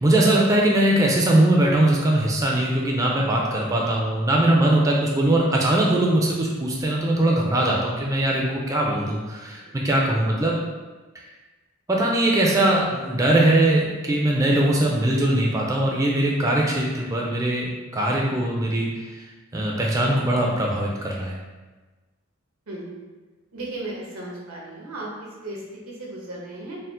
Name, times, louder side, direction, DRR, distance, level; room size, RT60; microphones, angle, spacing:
voice 1, 0.0-10.5 11.9-19.2 19.5-21.3, right 1 dB, 15° right, -2 dB, 0.4 m, -21 dB
voice 2, 23.5-26.8, right 2 dB, 90° right, -3 dB, 1.1 m, -35 dB
4.3 x 2.0 x 3.7 m, 1.3 s
head